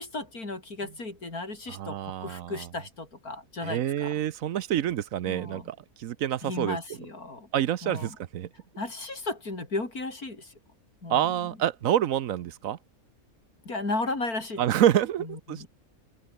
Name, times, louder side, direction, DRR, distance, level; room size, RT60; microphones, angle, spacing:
voice 1, 0.0-4.1 5.2-5.7 6.4-7.5 7.8-8.2 8.8-10.5 11.0-11.5 13.7-14.7 15.2-15.7, left 2 dB, 85° left, 5.6 m, -35 dB
voice 2, 1.7-2.6 3.6-6.8 7.5-8.5 11.1-12.8 14.6-15.7, right 11 dB, 70° right, 1.1 m, -27 dB
open air
omnidirectional pair, 1.5 m